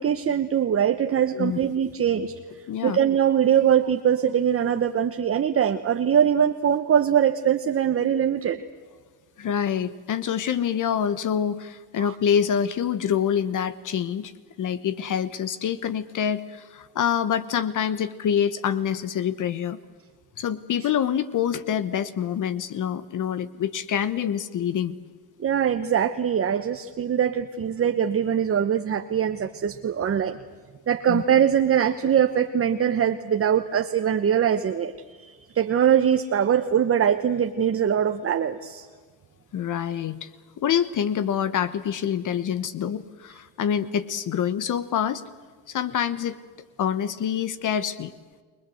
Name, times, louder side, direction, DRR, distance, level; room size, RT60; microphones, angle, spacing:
voice 1, 0.0-2.3 2.8-8.6 12.0-12.1 25.4-30.4 30.9-34.9 35.2-38.9, right 9 dB, 35° right, 7 dB, 1.1 m, -22 dB
voice 2, 1.3-1.7 2.7-3.0 9.4-14.3 14.6-19.8 20.4-25.0 31.1-31.2 39.5-40.3 40.6-45.2 45.7-46.4 46.8-48.1, left 8 dB, 50° left, 15 dB, 1.2 m, -26 dB
29.0 x 21.0 x 7.8 m, 1.5 s
supercardioid pair, 90°, 40 cm